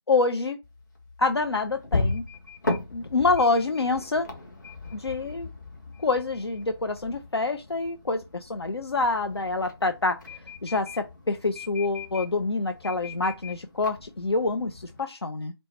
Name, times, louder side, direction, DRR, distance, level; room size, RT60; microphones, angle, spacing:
voice 1, 0.1-0.6 1.2-2.2 2.9-4.3 4.9-5.5 6.0-15.5, left 3 dB, 65° left, 0.5 m, -26 dB
sound 1, 0.6-15.0, left 3 dB, 45° left, 1.1 m, -37 dB
4.5 x 2.0 x 4.3 m
figure-of-eight pair, 160°, 14 cm